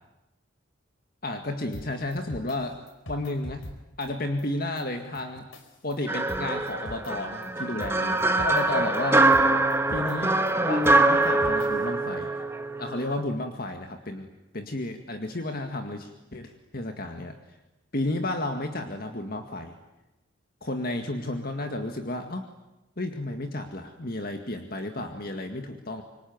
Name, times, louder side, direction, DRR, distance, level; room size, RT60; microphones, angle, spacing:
voice 1, 1.2-2.8 3.1-3.6 4.0-5.5 5.8-9.3 9.9-12.3 12.8-14.3 14.5-17.3 17.9-19.7 20.6-22.4 23.0-26.0, left 2 dB, 45° left, 5 dB, 2.0 m, -32 dB
sound 1, 1.6-2.6 2.9-3.7 4.0-4.1 4.4-4.5 4.8-4.9 5.1-6.4 6.7-7.1 7.4-8.6 8.9-9.4 9.7-10.1 10.5-11.7, left 1 dB, 75° left, 4.6 m, -41 dB
sound 2, 6.1-13.2, right 2 dB, 10° right, 1.4 m, -24 dB
26.5 x 23.5 x 9.5 m, 0.97 s
head